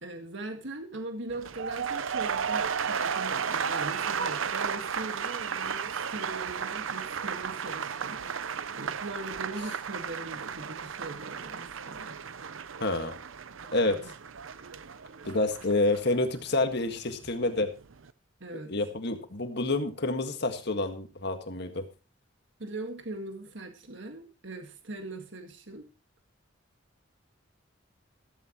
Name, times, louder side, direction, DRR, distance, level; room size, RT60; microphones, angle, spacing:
voice 1, 0.0-8.2 8.7-12.2 13.9-14.1 18.4-18.7 22.6-25.9, right 2 dB, 65° right, 6 dB, 1.8 m, -40 dB
sound 1, 1.3-17.4 17.7-18.1, right 6 dB, 80° right, 0.7 m, -34 dB
voice 2, 12.8-13.1 13.7-14.1 15.2-17.7 18.7-21.9, left 2 dB, 55° left, 7 dB, 1.8 m, -28 dB
14.5 x 14.0 x 3.0 m, 0.31 s
head